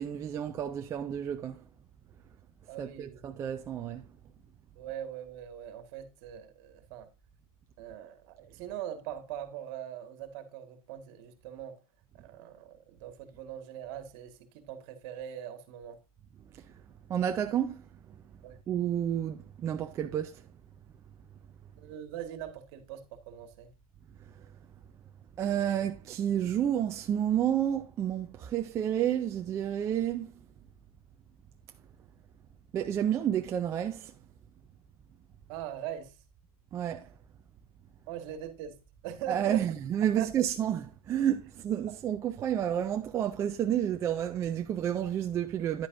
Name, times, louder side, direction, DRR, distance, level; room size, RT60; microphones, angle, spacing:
voice 1, 0.0-1.6 2.8-4.0 16.5-16.6 17.1-17.8 18.7-20.4 25.4-30.3 32.7-34.1 36.7-37.1 39.3-45.9, right 10 dB, 15° right, 0.4 m, -30 dB
voice 2, 2.7-3.2 4.8-7.1 7.8-11.8 12.1-16.0 18.4-18.6 21.8-23.7 35.5-36.2 38.1-39.8 40.2-40.3, right 10 dB, 40° right, 1.7 m, -41 dB
10.5 x 8.6 x 2.6 m
hypercardioid pair, 140°, 19 cm